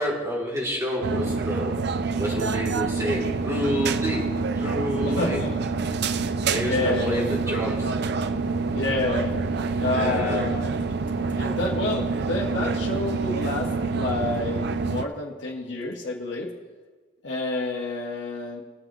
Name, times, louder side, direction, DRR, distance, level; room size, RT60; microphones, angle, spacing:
voice 1, 0.0-1.7 2.2-4.3 4.5-5.4 6.5-8.0 9.9-10.5, equal, 15° right, -4 dB, 2.8 m, -29 dB
sound 1, 1.0-15.1, right 4 dB, 65° right, 0.5 m, -27 dB
voice 2, 5.0-5.6 6.6-7.4 8.7-9.4 9.8-10.7 11.3-16.5 17.2-18.6, left 2 dB, 70° left, -2 dB, 1.3 m, -29 dB
21.5 x 7.6 x 3.0 m, 1.4 s
head